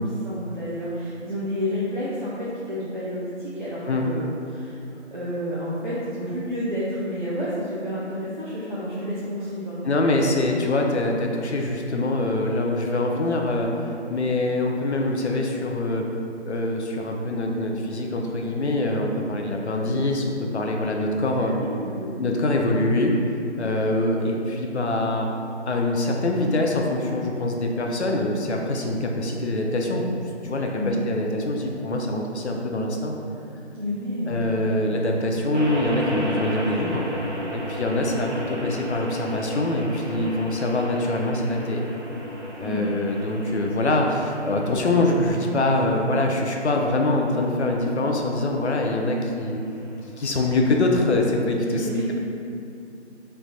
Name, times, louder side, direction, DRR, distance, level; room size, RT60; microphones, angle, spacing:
voice 1, 0.0-4.2 4.5-4.8 5.1-9.8 21.3-22.1 30.7-31.0 33.7-34.8 42.6-42.9 51.6-52.2, equal, 45° right, -10 dB, 0.5 m, -30 dB
voice 2, 9.8-16.0 16.4-21.5 22.1-23.1 23.6-25.3 25.7-30.0 30.4-33.2 34.3-37.1 37.5-41.8 42.6-49.6 50.2-51.9, left 2 dB, 70° left, 1 dB, 0.6 m, -24 dB
sound 1, 35.5-50.8, left 1 dB, 90° right, 0.8 m, -35 dB
3.3 x 2.2 x 3.9 m, 2.6 s
figure-of-eight pair, 180°, 35 cm